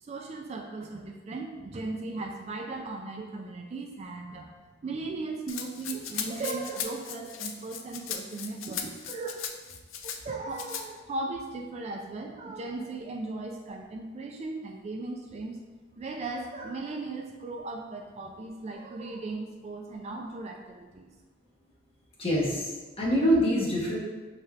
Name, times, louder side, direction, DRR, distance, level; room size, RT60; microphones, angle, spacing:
voice 1, 0.0-4.5 4.8-9.4 10.0-15.6 16.0-21.1, right 3 dB, 35° right, 2 dB, 0.3 m, -37 dB
Rattle (instrument), 5.5-10.2 10.5-10.8, left 8 dB, 80° left, 0.4 m, -37 dB
voice 2, 22.2-24.0, equal, 30° left, -4 dB, 0.9 m, -25 dB
5.9 x 3.2 x 2.4 m, 1.3 s
head